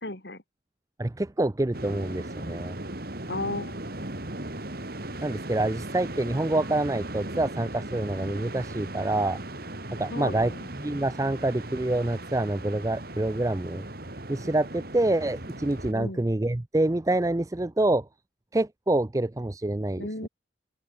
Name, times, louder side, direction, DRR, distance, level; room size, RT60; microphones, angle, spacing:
voice 1, 0.0-0.4 3.3-3.8 10.1-10.6 15.9-16.2 20.0-20.3, left 2 dB, 60° left, 3.7 m, -34 dB
voice 2, 1.0-2.8 5.2-9.4 10.0-10.5 10.8-13.8 14.3-18.1 18.5-20.3, right 2 dB, 15° right, 0.5 m, -27 dB
sound 1, 1.7-15.9, right 1 dB, 50° right, 2.8 m, -37 dB
open air
head